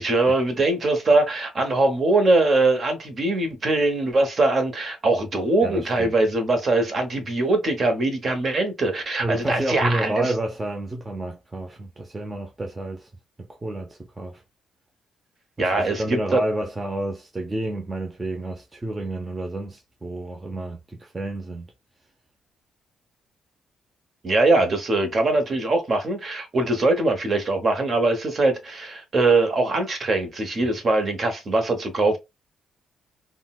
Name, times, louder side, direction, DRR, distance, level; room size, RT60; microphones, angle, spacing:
voice 1, 0.0-10.3 15.6-16.4 24.2-32.2, right 2 dB, 40° right, 1.0 m, -22 dB
voice 2, 5.6-6.1 9.2-13.1 13.4-14.4 15.6-21.7, right 1 dB, 20° right, 0.6 m, -30 dB
3.7 x 2.2 x 2.3 m
cardioid pair, 90°, 0 cm